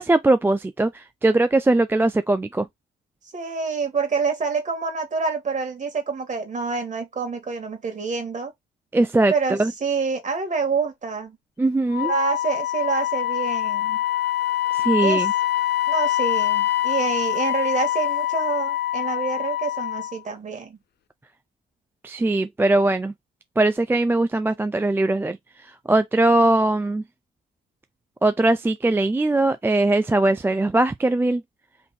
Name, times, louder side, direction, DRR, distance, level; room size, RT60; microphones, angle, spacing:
voice 1, 0.0-2.7 8.9-9.7 11.6-12.1 14.7-15.3 22.0-23.1 23.6-25.4 25.6-27.0 28.2-31.4, right 2 dB, 10° right, 0.3 m, -20 dB
voice 2, 3.3-8.5 9.3-11.4 12.1-14.0 15.0-15.3 15.9-20.8, right 5 dB, 40° right, 2.1 m, -27 dB
Wind instrument woodwind instrument, 11.9-20.2, left 13 dB, 55° left, 0.6 m, -24 dB
3.8 x 2.9 x 4.3 m
cardioid pair, 90°, 20 cm